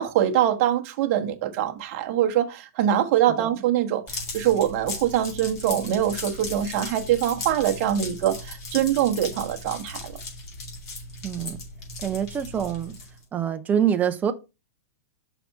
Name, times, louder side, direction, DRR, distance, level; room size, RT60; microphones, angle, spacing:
voice 1, 0.0-10.1, right 11 dB, 45° right, 1.1 m, -24 dB
sound 1, 4.1-13.2, left 3 dB, 35° left, 3.1 m, -37 dB
voice 2, 11.2-11.6 12.0-13.0 13.3-14.3, right 8 dB, 20° right, 0.7 m, -25 dB
5.8 x 4.1 x 5.6 m
hypercardioid pair, 130°, 9 cm